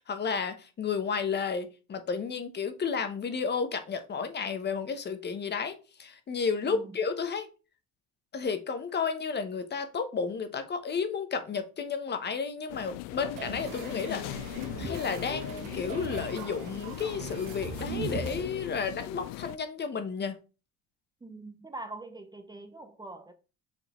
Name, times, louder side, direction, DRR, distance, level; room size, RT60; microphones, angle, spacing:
voice 1, 0.1-7.5 8.3-14.2 14.8-20.4, left 5 dB, 30° left, 1.0 m, -32 dB
sound 1, 12.7-19.6, left 17 dB, 85° left, 0.5 m, -39 dB
sound 2, 13.4-18.4, right 5 dB, 75° right, 1.3 m, -40 dB
voice 2, 21.2-23.3, right 2 dB, 10° right, 0.7 m, -43 dB
5.8 x 3.9 x 4.2 m
cardioid pair, 110°, 32 cm